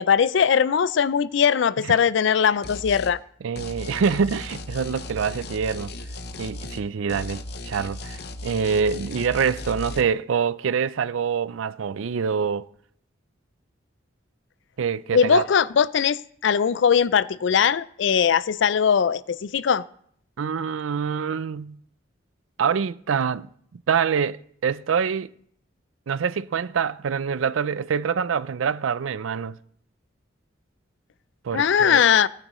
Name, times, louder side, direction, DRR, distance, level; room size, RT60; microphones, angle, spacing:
voice 1, 0.0-3.2 15.1-19.9 31.5-32.3, left 7 dB, 70° left, 0.4 m, -20 dB
sound 1, 2.6-3.2 3.6-6.8 7.1-10.0, left 2 dB, 50° left, 0.7 m, -36 dB
voice 2, 3.4-5.9 6.4-12.7 14.8-15.4 20.4-21.8 22.6-25.3 26.1-29.6 31.4-32.0, right 6 dB, 85° right, 0.4 m, -25 dB
19.0 x 9.7 x 3.1 m
head